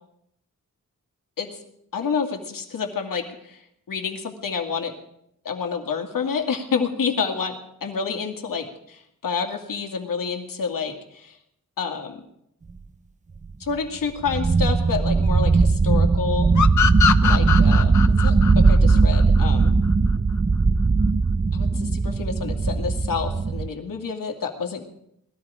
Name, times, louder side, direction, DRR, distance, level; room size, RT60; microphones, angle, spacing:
voice 1, 1.9-3.6 3.9-4.9 5.4-8.6 9.2-11.4 11.8-12.2 13.6-16.5 17.2-17.9 18.2-19.8 21.5-24.8, left 5 dB, 80° left, 3 dB, 2.4 m, -28 dB
sound 1, 13.4-13.5 13.7-13.8 14.2-23.7, right 4 dB, 20° right, 0.6 m, -19 dB
sound 2, 16.6-19.9, left 8 dB, 60° left, 0.8 m, -23 dB
19.5 x 13.5 x 5.1 m, 0.74 s
wide cardioid pair, 80°, 33 cm